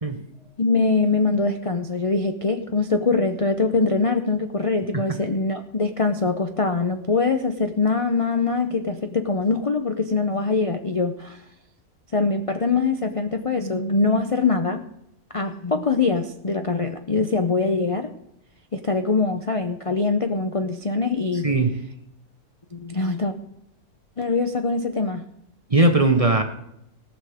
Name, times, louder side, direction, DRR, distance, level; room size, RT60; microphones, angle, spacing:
voice 1, 0.6-11.4 12.1-14.8 15.3-18.1 18.7-21.5 22.7-23.3 24.2-25.2, left 4 dB, 40° left, 6 dB, 0.5 m, -23 dB
voice 2, 21.4-21.8 25.7-26.4, right 2 dB, 30° right, 6 dB, 0.8 m, -19 dB
18.5 x 6.4 x 5.0 m, 0.79 s
omnidirectional pair, 1.6 m